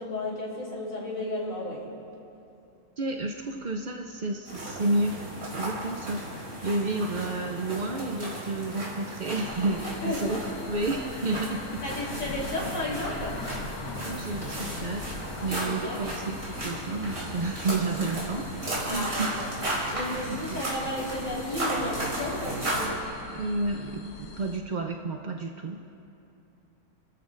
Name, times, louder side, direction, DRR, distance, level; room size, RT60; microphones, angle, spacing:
voice 1, 0.0-1.8 9.9-10.3 11.8-13.4 15.6-16.0 18.9-19.5 19.9-23.0, left 1 dB, 60° left, -5 dB, 4.0 m, -33 dB
voice 2, 3.0-5.2 5.6-6.2 6.6-11.8 14.0-15.1 15.4-19.4 20.1-20.6 23.3-25.8, right 2 dB, 50° right, 2 dB, 0.5 m, -31 dB
sound 1, 4.4-22.9, right 1 dB, 80° right, 4.3 m, -35 dB
sound 2, 9.4-24.6, left 4 dB, 80° left, 1.4 m, -42 dB
29.0 x 13.5 x 2.6 m, 2.8 s
omnidirectional pair, 1.6 m